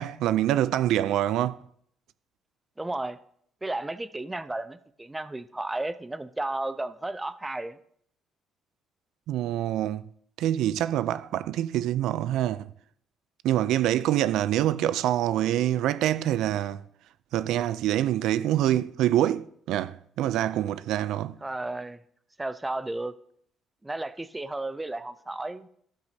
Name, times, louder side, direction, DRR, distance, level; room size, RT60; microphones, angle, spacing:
voice 1, 0.0-1.6 9.3-10.1 10.4-12.7 13.4-16.8 17.3-21.3, right 12 dB, 80° right, 0.3 m, -25 dB
voice 2, 2.8-3.2 3.6-7.8 21.4-22.0 22.4-23.1 23.8-25.7, right 2 dB, 10° right, 0.4 m, -33 dB
12.5 x 8.2 x 2.7 m
cardioid pair, 140°, 0 cm